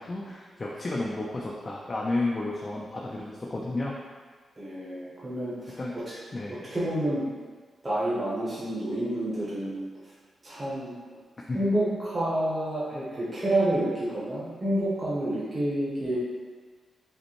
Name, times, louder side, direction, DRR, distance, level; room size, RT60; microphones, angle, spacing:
voice 1, 0.0-3.9 5.8-5.9 6.3-6.7 11.5-11.7, left 2 dB, 25° left, -4 dB, 0.3 m, -32 dB
voice 2, 4.6-6.1 6.7-7.2 7.8-9.8 10.4-10.9 11.5-16.2, right 1 dB, 25° right, -10 dB, 0.8 m, -29 dB
5.1 x 2.1 x 3.0 m, 1.5 s
wide cardioid pair, 175°, 0 cm